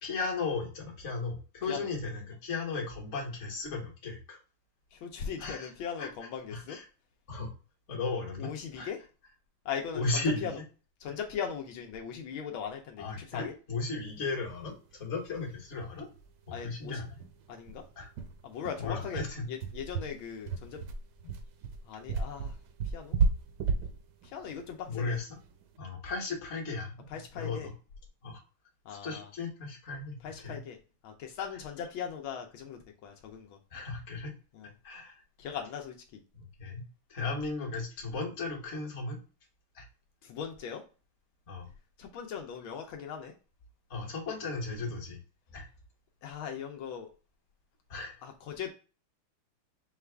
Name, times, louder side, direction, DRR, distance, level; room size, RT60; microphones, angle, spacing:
voice 1, 0.0-4.4 5.4-5.7 6.0-6.1 6.5-6.8 7.3-7.5 7.9-8.9 9.9-10.5 13.0-16.1 16.5-17.2 18.0-18.1 18.8-19.5 21.2-21.3 24.9-25.3 25.8-27.7 28.2-28.4 29.0-30.6 33.7-34.3 34.8-35.2 36.3-36.8 37.1-39.2 39.7-39.9 41.5-41.7 43.9-45.2 45.5-45.7 47.9-48.2, left 3 dB, 40° left, -1 dB, 1.4 m, -36 dB
voice 2, 4.9-6.8 8.4-9.0 9.6-10.5 11.0-13.5 16.5-17.0 17.5-17.8 18.4-20.8 21.8-22.5 22.8-23.2 24.2-25.2 27.1-27.7 28.8-29.3 30.2-30.8 31.0-33.6 34.5-34.7 35.4-35.9 40.2-40.8 42.0-43.3 46.2-47.1 48.2-48.7, left 7 dB, 80° left, 2 dB, 1.5 m, -39 dB
sound 1, 15.3-15.4 15.7-15.8 16.1-16.3 16.6-16.7 17.2-25.6, right 4 dB, 70° right, 1.1 m, -33 dB
5.7 x 2.4 x 3.3 m, 0.35 s
omnidirectional pair, 2.2 m